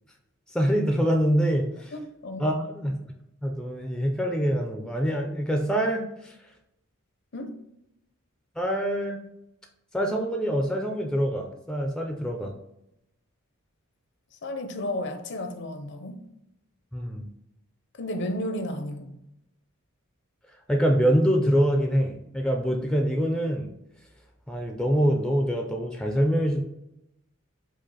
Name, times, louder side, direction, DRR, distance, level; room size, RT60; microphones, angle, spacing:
voice 1, 0.5-1.9 2.4-2.9 3.4-6.3 8.6-9.2 9.9-12.5 16.9-17.3 20.7-23.7 24.5-26.6, equal, 5° left, 0.4 m, -25 dB
voice 2, 1.9-2.4 7.3-7.5 14.4-16.2 18.0-19.2, left 1 dB, 55° left, 0.6 m, -33 dB
5.0 x 2.4 x 4.0 m
head